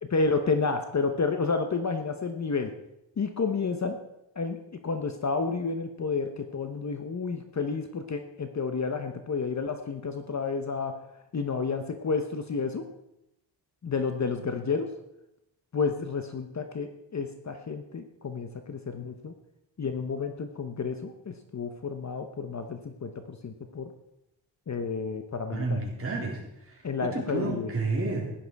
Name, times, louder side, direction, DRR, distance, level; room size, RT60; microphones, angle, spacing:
voice 1, 0.0-2.7 3.2-4.0 4.4-11.0 11.3-12.9 13.8-14.9 15.7-19.3 19.8-23.9 24.7-25.8 26.8-27.7, left 4 dB, 35° left, 7 dB, 1.0 m, -30 dB
voice 2, 25.5-26.4 27.0-28.3, right 3 dB, 30° right, -2 dB, 3.9 m, -30 dB
16.0 x 11.0 x 4.7 m, 0.87 s
wide cardioid pair, 130°, 46 cm